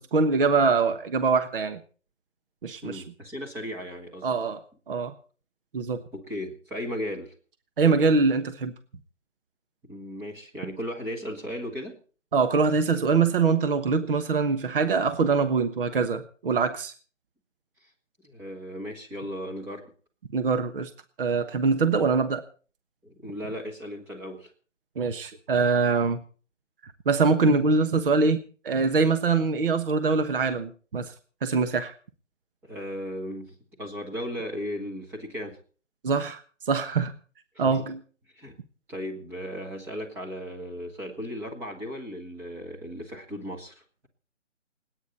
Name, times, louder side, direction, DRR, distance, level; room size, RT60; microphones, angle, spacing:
voice 1, 0.0-1.8 2.6-3.0 4.2-4.6 4.9-5.1 5.7-6.0 7.8-8.7 12.3-16.9 20.3-20.9 21.2-22.4 25.0-26.2 27.1-31.1 31.4-31.9 36.0-37.1 37.6-38.0, right 4 dB, 45° right, 9 dB, 1.3 m, -23 dB
voice 2, 2.8-4.3 6.1-7.4 9.8-12.0 17.8-17.9 18.2-19.9 23.0-24.5 32.6-35.6 37.5-37.7 38.4-38.6 38.9-44.1, equal, 5° right, -1 dB, 1.7 m, -36 dB
29.0 x 9.6 x 4.2 m, 0.39 s
figure-of-eight pair, 155°, 38 cm